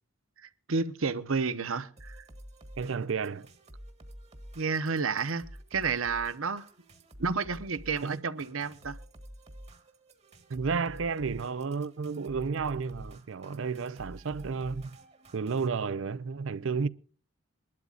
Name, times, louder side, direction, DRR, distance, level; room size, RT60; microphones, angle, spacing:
voice 1, 0.4-2.2 4.5-5.4 5.7-6.6 7.2-9.0, right 4 dB, 90° right, 0.9 m, -31 dB
sound 1, 2.0-15.7, equal, 35° right, 1.4 m, -50 dB
voice 2, 2.8-3.5 8.0-8.2 10.5-15.0 15.3-16.9, right 5 dB, 65° right, 0.5 m, -32 dB
23.5 x 12.0 x 2.4 m
head